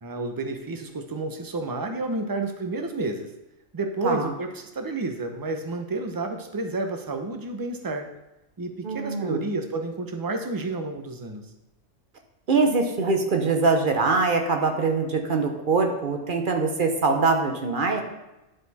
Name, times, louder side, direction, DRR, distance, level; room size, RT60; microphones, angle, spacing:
voice 1, 0.0-3.3 3.7-8.1 8.6-11.5, right 2 dB, 25° right, 5 dB, 0.5 m, -30 dB
voice 2, 8.8-9.5 12.5-18.0, right 4 dB, 45° right, 4 dB, 1.0 m, -23 dB
10.5 x 4.4 x 4.1 m, 0.96 s
omnidirectional pair, 1.3 m